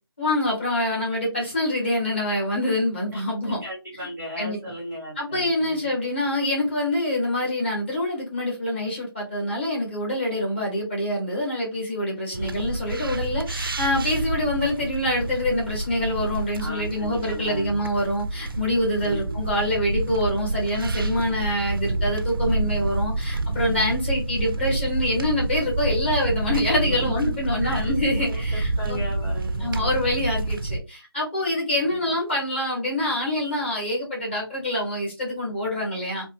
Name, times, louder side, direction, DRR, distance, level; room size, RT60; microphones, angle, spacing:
voice 1, 0.2-3.6 4.0-4.1 4.4-4.7 5.2-29.0 29.6-36.2, left 1 dB, 25° left, -3 dB, 1.2 m, -26 dB
voice 2, 3.1-5.9 12.3-12.6 16.6-17.8 19.0-19.4 22.7-22.9 23.4-23.8 26.8-27.4 27.6-30.0 31.9-32.0, equal, 10° left, -12 dB, 0.4 m, -36 dB
sound 1, 12.3-30.8, right 2 dB, 60° right, 0.4 m, -28 dB
2.7 x 2.2 x 2.8 m, 0.27 s
figure-of-eight pair, 175°, 13 cm